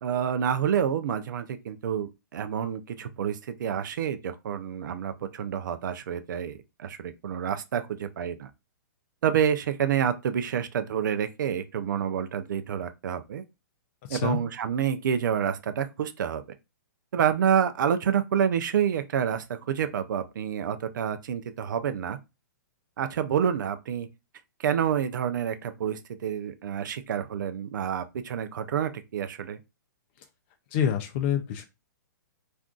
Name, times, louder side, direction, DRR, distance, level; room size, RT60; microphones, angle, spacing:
voice 1, 0.0-8.5 9.2-13.4 14.1-16.4 17.1-22.2 23.0-24.1 24.6-29.6, right 8 dB, 70° right, 0.4 m, -28 dB
voice 2, 14.0-14.4 30.7-31.7, left 9 dB, 35° left, 0.4 m, -27 dB
2.5 x 2.3 x 3.7 m
hypercardioid pair, 160°, 11 cm